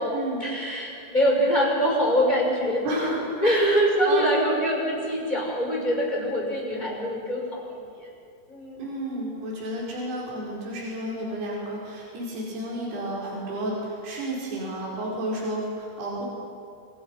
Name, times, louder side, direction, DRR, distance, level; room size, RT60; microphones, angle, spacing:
voice 1, 0.4-7.7 7.9-8.1 8.5-8.8, equal, 10° left, -1 dB, 5.7 m, -24 dB
voice 2, 2.8-3.8 4.1-4.6 8.8-16.3, right 1 dB, 65° right, -5 dB, 7.2 m, -31 dB
29.0 x 26.0 x 5.8 m, 2.5 s
omnidirectional pair, 5.0 m